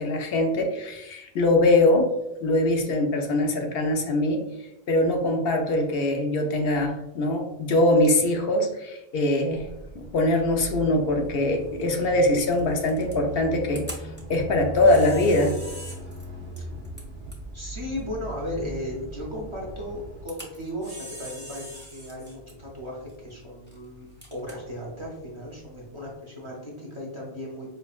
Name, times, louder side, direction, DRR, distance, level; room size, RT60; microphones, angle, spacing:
voice 1, 0.0-2.1 2.4-4.5 4.9-9.7 9.9-15.5, left 1 dB, 70° left, 2 dB, 0.8 m, -22 dB
sound 1, 9.5-20.3, right 1 dB, 75° right, 0.9 m, -39 dB
Camera, 10.7-26.1, equal, 10° left, 0.7 m, -46 dB
voice 2, 14.7-15.0 17.5-27.7, left 1 dB, 30° right, -3 dB, 0.7 m, -36 dB
5.2 x 2.1 x 2.4 m, 0.89 s
omnidirectional pair, 1.0 m